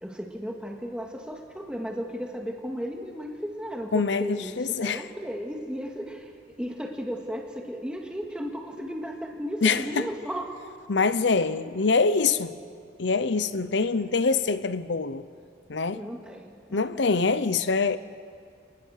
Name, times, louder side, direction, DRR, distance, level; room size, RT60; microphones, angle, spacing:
voice 1, 0.0-10.5 15.9-17.1, equal, 5° right, 2.0 m, -35 dB
voice 2, 3.9-5.0 9.6-10.1 10.9-12.5 13.0-15.2 15.7-16.0 16.7-18.0, left 4 dB, 70° left, 0.8 m, -24 dB
28.5 x 20.0 x 6.6 m
head